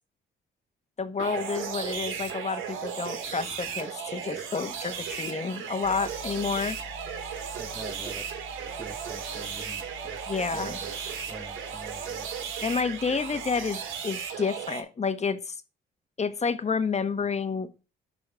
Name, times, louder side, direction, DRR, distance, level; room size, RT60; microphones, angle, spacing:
voice 1, 1.0-6.8 10.3-10.8 12.6-15.6 16.2-17.7, left 5 dB, 35° left, 1.3 m, -30 dB
sound 1, 1.2-14.8, right 7 dB, 85° right, 2.0 m, -35 dB
sound 2, 5.8-13.8, left 5 dB, 30° right, 3.8 m, -48 dB
voice 2, 7.6-8.3 8.8-10.2 10.5-10.9 11.3-12.3 13.3-13.4, equal, 10° right, 0.8 m, -45 dB
12.0 x 4.2 x 6.2 m
cardioid pair, 90°, 20 cm